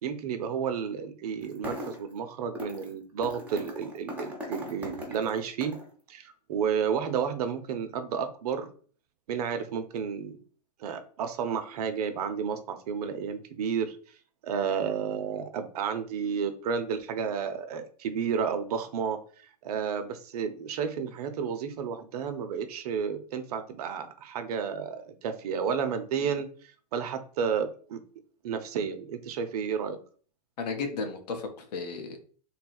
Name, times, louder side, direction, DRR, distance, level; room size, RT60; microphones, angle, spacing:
voice 1, 0.0-5.7 6.1-8.7 9.3-10.4 10.8-14.0 14.4-28.0 28.4-30.0, right 7 dB, 70° right, 8 dB, 0.7 m, -31 dB
sound 1, 1.4-2.1 2.5-2.9 3.2-5.9, left 1 dB, 5° right, 1.0 m, -39 dB
voice 2, 30.6-32.2, left 4 dB, 75° left, 5 dB, 1.1 m, -34 dB
3.5 x 2.3 x 4.3 m, 0.43 s
hypercardioid pair, 140°, 21 cm